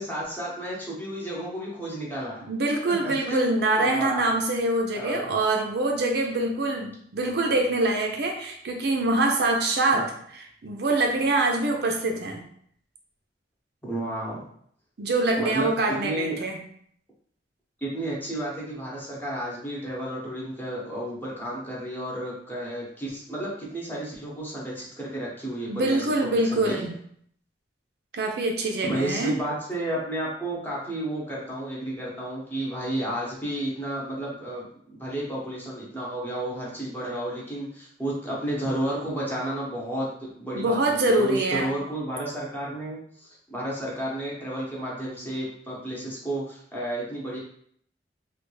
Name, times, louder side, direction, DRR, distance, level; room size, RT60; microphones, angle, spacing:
voice 1, 0.0-2.4 2.8-4.3 4.9-5.3 9.9-10.1 13.8-14.4 15.4-15.7 16.0-16.4 17.8-26.7 28.8-40.8 41.0-47.4, right 1 dB, 10° left, -5 dB, 0.9 m, -32 dB
voice 2, 2.5-10.0 10.6-12.4 15.0-16.6 25.7-27.0 28.1-29.4 40.5-41.7, right 2 dB, 65° right, 2 dB, 0.5 m, -24 dB
3.3 x 2.3 x 3.2 m, 0.65 s
head